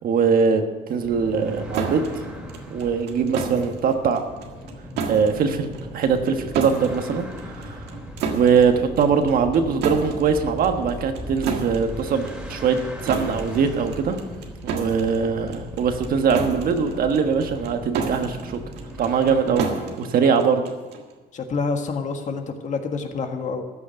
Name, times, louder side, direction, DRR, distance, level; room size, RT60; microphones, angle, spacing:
voice 1, 0.0-0.6 0.9-2.0 2.7-4.2 5.1-7.3 7.6-7.8 8.3-14.2 14.6-18.6 19.0-19.7 20.0-20.6, right 6 dB, 60° right, 6 dB, 1.4 m, -21 dB
sound 1, 1.0-19.6, equal, 5° right, 2.7 m, -38 dB
sound 2, 1.7-21.1, right 5 dB, 85° right, 1.7 m, -33 dB
voice 2, 21.3-23.6, left 4 dB, 45° left, 5 dB, 1.7 m, -27 dB
14.0 x 6.4 x 8.9 m, 1.3 s
cardioid pair, 110°, 17 cm